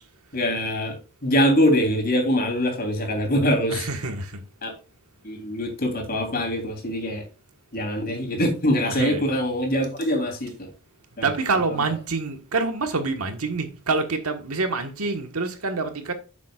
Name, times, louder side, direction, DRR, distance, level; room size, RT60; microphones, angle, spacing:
voice 1, 0.3-1.0 1.2-3.9 4.6-4.7 5.2-7.2 7.7-10.7 11.2-11.3 11.7-11.9, equal, 45° left, 3.4 m, -23 dB
voice 2, 3.7-4.4 7.1-7.2 8.9-9.2 11.2-16.1, right 3 dB, 85° right, 1.5 m, -26 dB
10.0 x 7.4 x 2.4 m
head